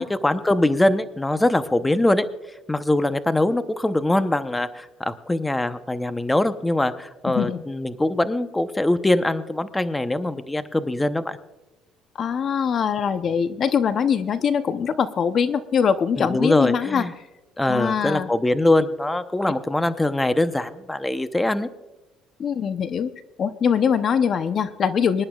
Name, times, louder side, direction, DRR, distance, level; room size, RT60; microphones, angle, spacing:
voice 1, 0.0-2.2 2.7-11.4 16.2-17.1 17.6-21.7, left 1 dB, 10° left, 11 dB, 0.7 m, -22 dB
voice 2, 12.1-17.0 17.7-18.3 22.4-23.1 23.4-25.2, left 7 dB, 45° left, 12 dB, 0.7 m, -22 dB
25.0 x 11.0 x 2.3 m, 1.1 s
cardioid pair, 115°, 0 cm